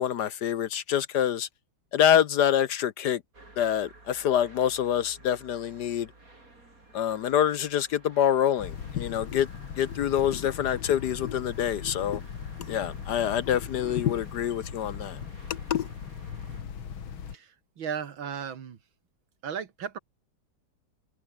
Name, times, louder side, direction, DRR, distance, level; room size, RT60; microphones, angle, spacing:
voice 1, 0.0-1.5 1.9-3.2 3.6-6.1 6.9-9.5 9.8-12.2 12.6-15.2 15.5-15.9, left 10 dB, 65° left, 1.3 m, -26 dB
sound 1, 3.3-16.6, right 2 dB, 45° right, 5.9 m, -53 dB
sound 2, 8.6-17.3, left 7 dB, 85° left, 2.8 m, -39 dB
voice 2, 17.3-18.8 19.4-20.0, right 7 dB, 75° right, 2.5 m, -35 dB
omnidirectional pair, 2.2 m